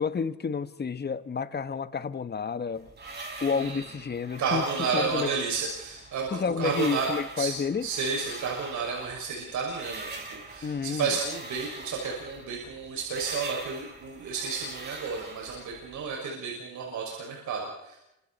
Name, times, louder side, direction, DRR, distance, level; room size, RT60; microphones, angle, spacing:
voice 1, 0.0-2.9 3.4-5.3 6.3-7.9 10.6-11.2, left 5 dB, 35° left, 1.5 m, -30 dB
sound 1, 2.7-16.1, right 3 dB, 35° right, 5.9 m, -43 dB
voice 2, 3.5-3.8 4.4-7.1 7.4-7.5 7.8-18.0, right 5 dB, 75° right, 6.4 m, -32 dB
28.5 x 26.0 x 4.3 m
cardioid pair, 90°, 30 cm